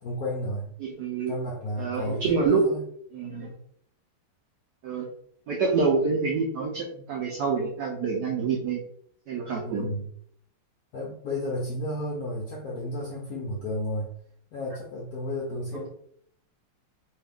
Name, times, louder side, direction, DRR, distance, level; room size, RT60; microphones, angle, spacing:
voice 1, 0.0-0.7 1.3-2.8 9.6-10.1 10.9-14.1 14.5-15.9, left 1 dB, 75° left, -3 dB, 0.8 m, -32 dB
voice 2, 0.8-1.3 1.8-2.6 3.1-3.5 4.8-5.1 5.5-8.8 9.3-9.9, right 5 dB, 90° right, 0 dB, 0.9 m, -27 dB
3.5 x 2.3 x 3.4 m, 0.66 s
omnidirectional pair, 2.4 m